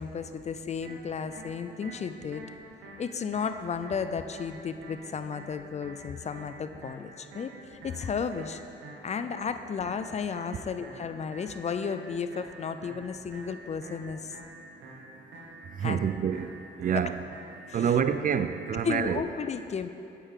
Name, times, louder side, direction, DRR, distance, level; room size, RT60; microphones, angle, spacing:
voice 1, 0.0-2.4 3.0-8.6 9.0-14.3 15.8-16.0 16.9-17.0 17.7-17.9 18.8-19.9, left 6 dB, 35° left, 10 dB, 0.4 m, -33 dB
sound 1, 0.8-18.8, right 1 dB, 85° right, 1.6 m, -48 dB
voice 2, 14.6-15.3 15.6-17.2 17.7-19.2, right 7 dB, 45° right, 10 dB, 0.4 m, -28 dB
8.8 x 8.3 x 3.7 m, 2.8 s
cardioid pair, 90°, 20 cm